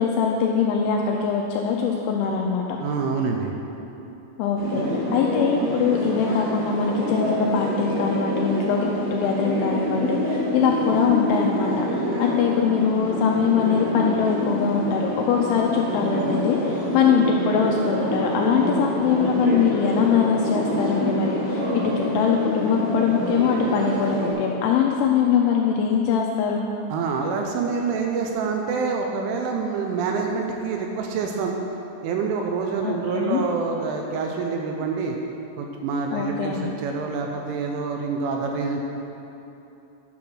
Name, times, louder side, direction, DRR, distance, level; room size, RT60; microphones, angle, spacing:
voice 1, 0.0-2.7 4.4-26.6 32.8-33.4 36.1-36.7, left 6 dB, 90° left, 0 dB, 2.7 m, -22 dB
voice 2, 2.7-3.5 4.7-5.0 26.9-31.6 32.0-35.1 35.6-38.8, right 5 dB, 80° right, 2 dB, 2.9 m, -26 dB
sound 1, 4.5-24.3, equal, 35° right, 1.5 m, -26 dB
10.5 x 5.9 x 6.2 m, 2.9 s
omnidirectional pair, 6.0 m